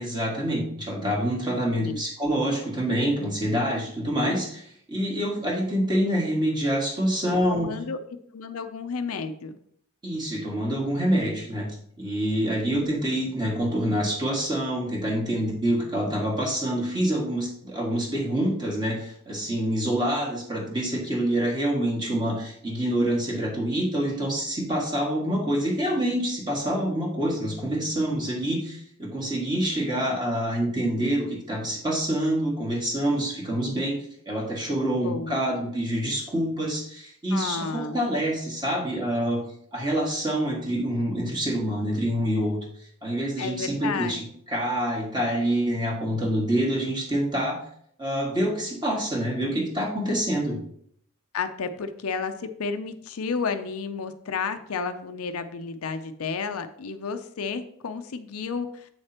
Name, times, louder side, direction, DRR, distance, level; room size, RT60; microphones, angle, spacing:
voice 1, 0.0-7.8 10.0-11.7 12.0-39.4 39.7-42.6 43.0-47.6 48.0-50.6, right 1 dB, 20° right, -2 dB, 1.9 m, -26 dB
voice 2, 7.5-8.0 8.3-9.6 35.0-35.4 37.3-38.0 43.4-44.2 51.3-58.9, left 5 dB, 70° left, 9 dB, 0.6 m, -31 dB
8.0 x 6.5 x 2.9 m, 0.66 s
head